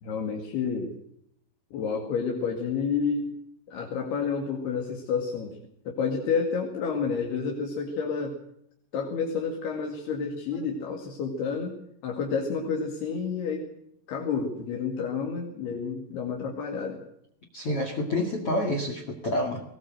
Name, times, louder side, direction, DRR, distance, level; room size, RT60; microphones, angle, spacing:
voice 1, 0.0-0.9 1.7-3.3 3.7-5.6 5.9-8.4 8.9-11.8 12.0-13.7 14.1-17.0, left 5 dB, 65° left, 1 dB, 4.1 m, -30 dB
voice 2, 17.5-19.6, left 1 dB, 45° left, 5 dB, 2.3 m, -28 dB
20.0 x 19.5 x 7.8 m, 0.73 s
omnidirectional pair, 5.0 m